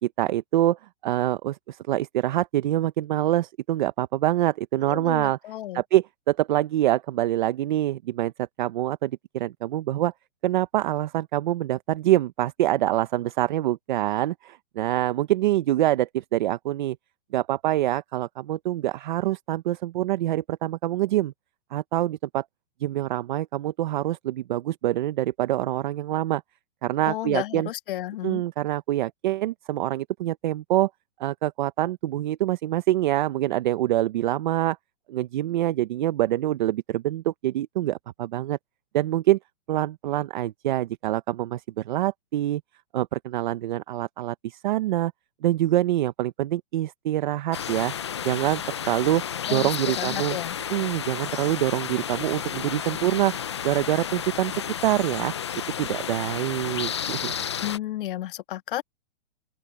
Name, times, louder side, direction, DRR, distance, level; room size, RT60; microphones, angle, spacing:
voice 1, 0.0-5.4 5.7-10.1 10.4-17.0 17.3-21.3 21.7-22.4 22.8-26.4 26.8-27.7 28.2-30.9 31.2-34.8 35.1-38.6 38.9-39.4 39.7-42.6 42.9-45.1 45.4-47.9 48.2-48.6 48.9-49.2 49.5-50.4 50.7-53.3 53.6-55.3 55.8-57.3, right 14 dB, 40° right, 0.8 m, -25 dB
voice 2, 4.9-5.8 27.1-28.4 49.5-50.6 57.6-58.8, left 14 dB, 45° left, 1.5 m, -32 dB
sound 1, 47.5-57.8, left 8 dB, 25° left, 0.3 m, -32 dB
open air
hypercardioid pair, 160°, 37 cm